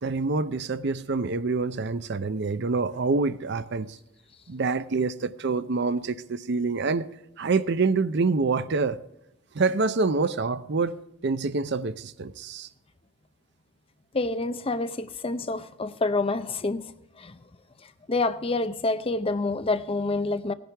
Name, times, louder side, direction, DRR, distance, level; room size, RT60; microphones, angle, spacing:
voice 1, 0.0-4.0 4.5-7.1 7.4-9.0 9.5-10.9 11.2-12.7, right 4 dB, 55° right, 0.6 m, -26 dB
voice 2, 14.1-16.9 17.2-17.4 18.1-20.5, left 3 dB, 25° left, 0.6 m, -27 dB
17.0 x 10.0 x 3.4 m
head